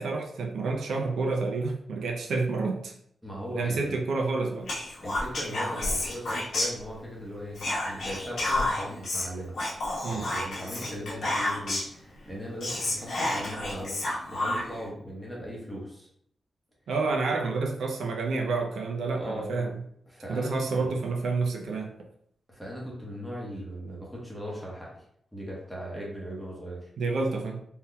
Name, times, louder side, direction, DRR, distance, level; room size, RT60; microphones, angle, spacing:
voice 1, 0.0-2.9 3.5-4.7 10.0-10.3 16.9-19.8 20.3-21.9 27.0-27.6, right 3 dB, 90° right, 1 dB, 0.5 m, -29 dB
voice 2, 3.2-4.0 5.0-9.5 10.1-16.1 19.2-19.6 20.1-20.9 22.5-24.9 25.3-26.9, equal, ahead, -4 dB, 0.8 m, -38 dB
Whispering, 4.7-7.2 7.5-12.0 12.3-12.4 12.6-14.9, left 1 dB, 60° left, 1.0 m, -30 dB
3.6 x 2.8 x 2.2 m, 0.70 s
wide cardioid pair, 175°, 0 cm